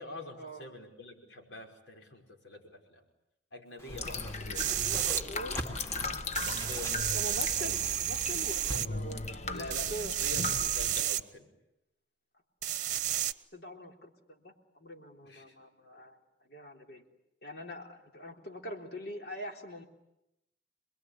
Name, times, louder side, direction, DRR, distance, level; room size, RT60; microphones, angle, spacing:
voice 1, 0.0-3.0 3.5-4.8 6.4-7.7 9.5-11.5 15.2-15.6, left 1 dB, 80° left, 3 dB, 5.5 m, -46 dB
Whoosh swoosh swish, 3.8-8.8, equal, 15° left, 3.0 m, -43 dB
sound 1, 3.9-11.0, left 3 dB, 40° left, 1.0 m, -38 dB
sound 2, 4.5-5.2 6.4-8.9 9.7-11.2 12.6-13.3, right 11 dB, 45° right, 0.9 m, -31 dB
voice 2, 4.8-5.6 7.1-10.1 13.5-16.2 16.5-17.1 17.4-19.9, equal, 60° left, 2 dB, 3.6 m, -43 dB
27.5 x 21.5 x 10.0 m, 0.86 s
head